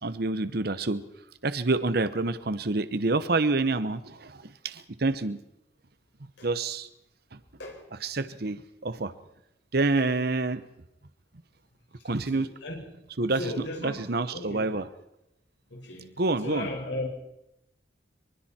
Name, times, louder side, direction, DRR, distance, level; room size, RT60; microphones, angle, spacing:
voice 1, 0.0-1.0 1.4-5.4 6.4-6.9 7.9-9.1 9.7-10.6 12.0-12.5 13.2-13.5 13.8-14.9 16.2-16.7, right 3 dB, 60° right, 13 dB, 1.0 m, -27 dB
voice 2, 12.3-12.8 13.4-14.7 15.7-16.1 16.4-17.1, left 1 dB, 85° left, 0 dB, 5.5 m, -36 dB
24.5 x 24.5 x 4.4 m, 0.85 s
head